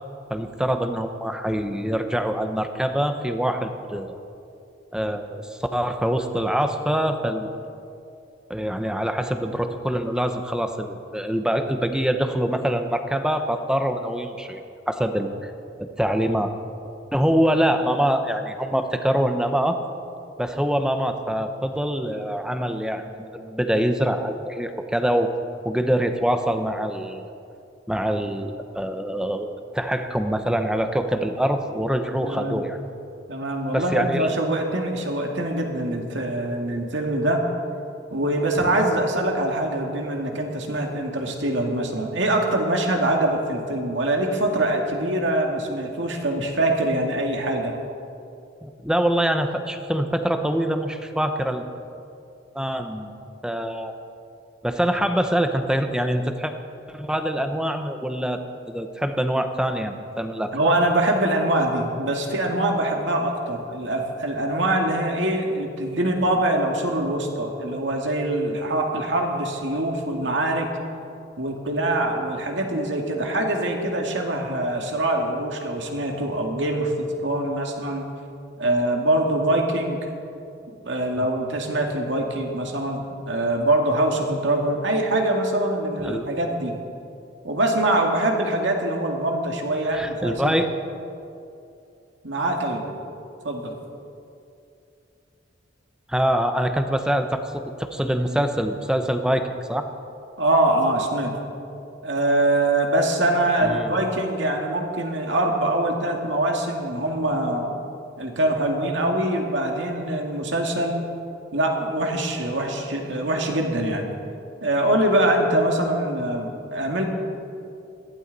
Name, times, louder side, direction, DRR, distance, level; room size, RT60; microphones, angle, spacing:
voice 1, 0.3-4.1 4.9-7.5 8.5-14.6 14.9-15.5 16.0-16.5 17.1-19.8 20.4-25.3 25.6-27.3 27.9-32.8 33.7-34.4 48.6-51.6 52.5-53.1 53.4-53.9 54.6-56.5 56.9-60.7 81.2-81.3 86.0-86.3 89.9-90.7 96.1-99.9 103.6-103.9, equal, 5° right, 6 dB, 0.9 m, -24 dB
voice 2, 32.2-32.6 33.3-37.4 38.1-47.7 60.5-70.7 71.4-78.1 78.6-80.1 80.7-86.7 87.4-90.6 92.2-92.9 93.4-93.7 100.4-101.3 102.0-107.7 108.2-111.0 111.5-114.1 114.6-117.0, right 1 dB, 80° right, 2 dB, 2.1 m, -24 dB
21.5 x 15.5 x 4.1 m, 2.6 s
head